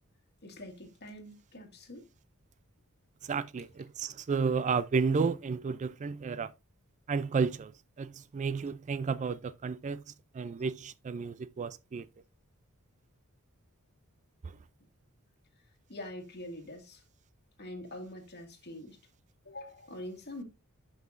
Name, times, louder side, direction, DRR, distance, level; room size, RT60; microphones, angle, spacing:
voice 1, 0.4-2.1 15.6-17.0 17.6-19.0 19.4-20.4, left 1 dB, 50° left, 2.1 m, -45 dB
voice 2, 3.2-6.5 7.1-7.7 8.0-10.0 10.4-12.0, right 5 dB, 35° right, 0.3 m, -32 dB
11.5 x 5.6 x 2.5 m
head